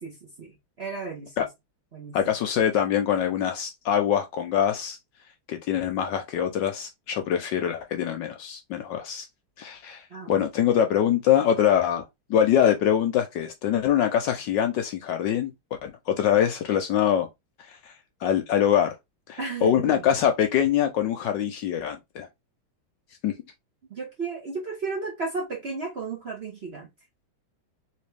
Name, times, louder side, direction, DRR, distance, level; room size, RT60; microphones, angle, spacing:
voice 1, 0.0-1.5 1.9-2.2 10.1-10.4 19.4-20.1 23.9-26.9, right 4 dB, 40° right, 0.9 m, -34 dB
voice 2, 2.1-5.0 5.5-9.3 9.6-15.5 15.8-17.3 17.7-17.9 18.2-18.9 19.3-22.3 23.2-23.3, left 9 dB, 70° left, 1.1 m, -24 dB
3.3 x 3.3 x 3.3 m
omnidirectional pair, 2.3 m